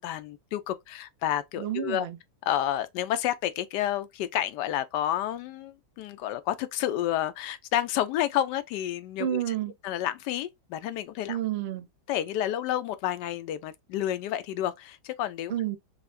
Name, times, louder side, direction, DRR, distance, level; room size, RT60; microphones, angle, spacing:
voice 1, 0.0-2.1 2.5-9.4 9.8-11.4 12.1-15.5, left 12 dB, 90° left, 1.2 m, -30 dB
voice 2, 1.6-2.2 9.2-9.7 11.3-11.9 15.5-15.8, right 12 dB, 85° right, 0.5 m, -30 dB
5.7 x 2.1 x 2.5 m
omnidirectional pair, 1.8 m